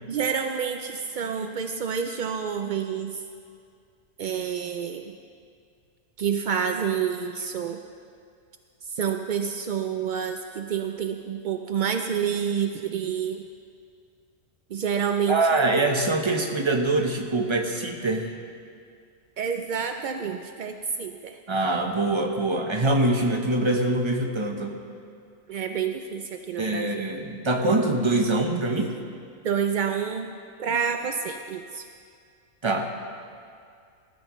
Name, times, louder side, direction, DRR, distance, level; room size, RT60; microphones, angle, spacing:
voice 1, 0.1-3.2 4.2-5.1 6.2-7.8 8.9-13.5 14.7-15.5 19.4-21.4 25.5-27.0 29.4-30.3 30.6-31.9, right 7 dB, 70° right, 6 dB, 0.4 m, -28 dB
voice 2, 15.3-18.3 21.5-24.8 26.6-28.9 32.6-32.9, right 2 dB, 25° right, 3 dB, 0.9 m, -24 dB
19.5 x 13.0 x 3.1 m, 2.3 s
omnidirectional pair, 1.4 m